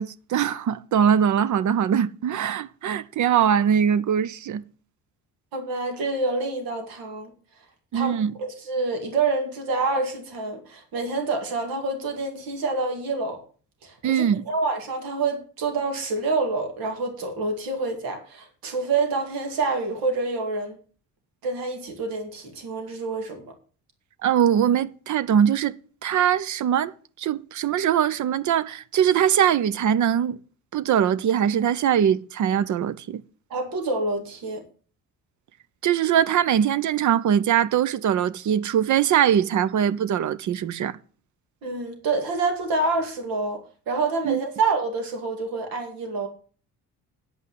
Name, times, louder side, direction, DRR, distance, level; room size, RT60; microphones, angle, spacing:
voice 1, 0.0-4.6 7.9-8.3 14.0-14.4 24.2-25.8 26.0-26.9 27.2-30.4 30.7-33.2 35.8-40.9 44.2-44.4, right 9 dB, 55° right, 0.7 m, -22 dB
voice 2, 5.5-7.3 7.9-13.4 13.8-20.8 21.4-23.5 33.5-34.6 41.6-46.3, right 3 dB, 75° right, 2.4 m, -27 dB
9.6 x 5.5 x 7.7 m
supercardioid pair, 60°, 35 cm